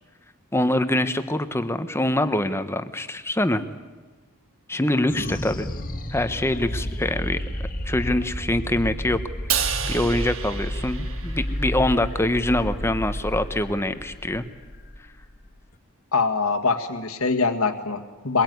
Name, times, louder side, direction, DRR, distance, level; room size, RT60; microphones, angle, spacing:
voice 1, 0.5-3.6 4.7-5.7 6.1-7.4 7.9-9.2 9.5-14.5, left 1 dB, 10° left, 10 dB, 1.1 m, -24 dB
sound 1, 5.1-15.7, equal, 40° left, 1.8 m, -31 dB
Crash cymbal, 9.5-11.9, right 8 dB, 65° right, 1.5 m, -30 dB
voice 2, 16.1-18.4, left 4 dB, 75° left, 7 dB, 1.8 m, -23 dB
23.0 x 22.5 x 9.4 m, 1.3 s
head